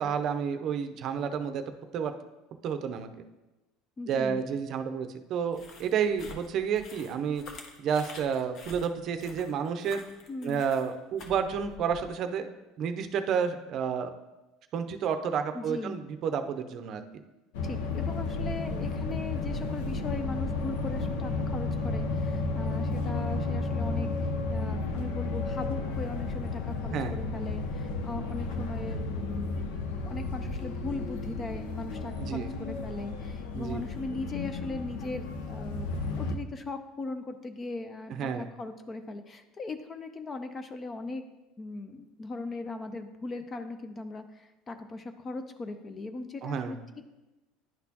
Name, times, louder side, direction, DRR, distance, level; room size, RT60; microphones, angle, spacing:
voice 1, 0.0-1.6 1.9-2.1 2.6-3.1 4.1-7.4 7.8-10.0 10.4-12.5 12.8-14.1 14.7-17.0 26.9-27.2 32.2-32.5 33.5-33.8 38.2-38.5 46.4-46.8, right 7 dB, 50° right, 7 dB, 0.5 m, -30 dB
voice 2, 4.0-4.4 10.3-10.6 15.5-16.0 17.6-24.1 24.5-29.6 30.0-35.9 36.2-41.2 41.6-46.8, left 3 dB, 25° left, 9 dB, 0.4 m, -39 dB
sound 1, 5.5-12.1, left 3 dB, 45° left, 1.0 m, -48 dB
sound 2, 17.5-36.4, left 3 dB, 80° left, 0.7 m, -33 dB
10.5 x 4.2 x 2.8 m, 1.1 s
supercardioid pair, 115°, 0 cm